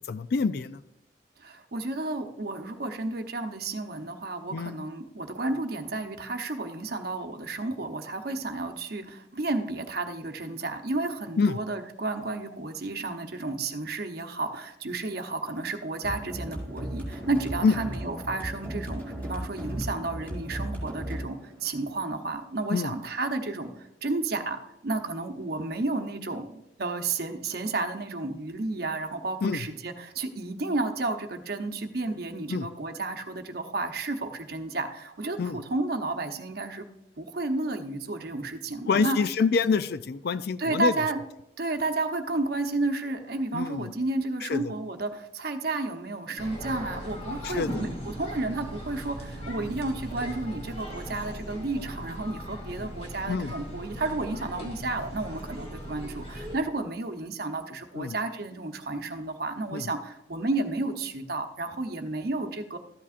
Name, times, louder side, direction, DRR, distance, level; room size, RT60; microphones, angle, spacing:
voice 1, 0.1-0.8 4.5-4.8 11.4-11.6 17.6-17.8 22.7-22.9 29.4-29.7 32.5-32.7 35.4-35.6 38.9-40.9 43.5-43.9 44.5-44.7 47.4-47.9 53.3-53.5 54.6-54.7 58.0-58.2 59.7-59.9, left 5 dB, 60° left, 14 dB, 0.4 m, -26 dB
voice 2, 1.4-36.9 37.2-39.2 40.6-41.2 41.6-62.8, right 2 dB, 60° right, 6 dB, 0.8 m, -32 dB
sound 1, 16.0-23.0, right 1 dB, 10° left, 3.4 m, -36 dB
sound 2, 46.4-56.6, equal, 35° left, 2.5 m, -38 dB
13.5 x 8.4 x 2.5 m, 0.90 s
head